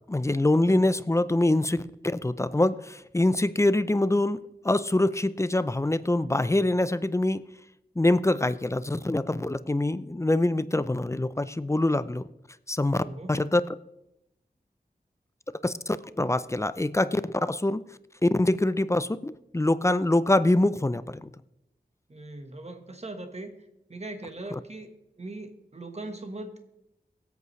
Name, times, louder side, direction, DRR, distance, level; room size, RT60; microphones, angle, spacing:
voice 1, 0.1-1.9 2.1-7.4 8.0-12.3 12.7-13.0 13.3-13.6 15.6-17.9 18.2-21.3 24.5-24.6, left 1 dB, 15° left, 15 dB, 0.4 m, -24 dB
voice 2, 13.0-13.4 22.1-23.6 23.9-26.8, right 2 dB, 40° right, 7 dB, 1.3 m, -40 dB
22.5 x 8.3 x 3.2 m, 0.86 s
wide cardioid pair, 70°, 17 cm